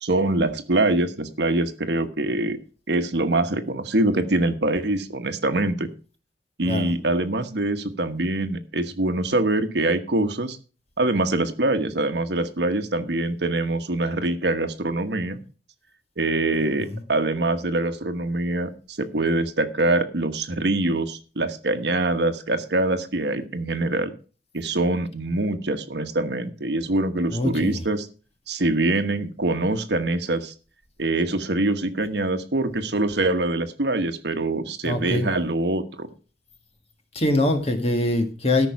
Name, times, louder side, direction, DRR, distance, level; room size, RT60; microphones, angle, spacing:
voice 1, 0.0-2.6 2.9-5.9 6.6-10.6 11.0-15.4 16.2-24.1 24.5-28.1 28.5-30.5 31.0-36.1, right 2 dB, 70° right, 8 dB, 1.3 m, -24 dB
voice 2, 27.3-27.8 34.8-35.3 37.1-38.7, left 1 dB, 35° left, 6 dB, 1.8 m, -23 dB
13.5 x 5.9 x 5.9 m, 0.37 s
head